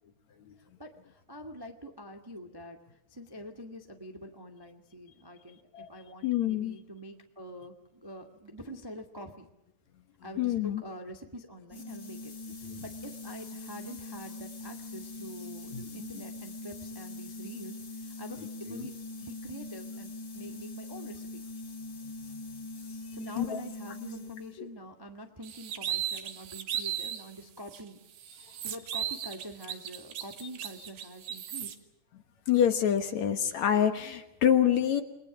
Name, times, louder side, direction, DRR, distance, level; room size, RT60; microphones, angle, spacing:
voice 1, 0.8-2.8 3.1-9.4 10.2-12.3 12.7-18.9 19.2-21.5 23.1-28.0 28.6-31.8, equal, 10° right, 4 dB, 1.0 m, -45 dB
voice 2, 6.2-6.8 10.3-10.8 12.6-12.8 15.7-16.2 18.4-18.8 22.3-22.4 23.4-23.6 24.6-24.7 32.5-35.0, left 9 dB, 60° left, 9 dB, 2.3 m, -27 dB
sound 1, 11.7-24.6, left 2 dB, 35° left, 3.3 m, -42 dB
sound 2, 25.4-27.3 27.7-27.8 28.2-31.7, right 10 dB, 65° right, 2.8 m, -36 dB
29.5 x 21.5 x 6.2 m, 0.83 s
omnidirectional pair, 4.1 m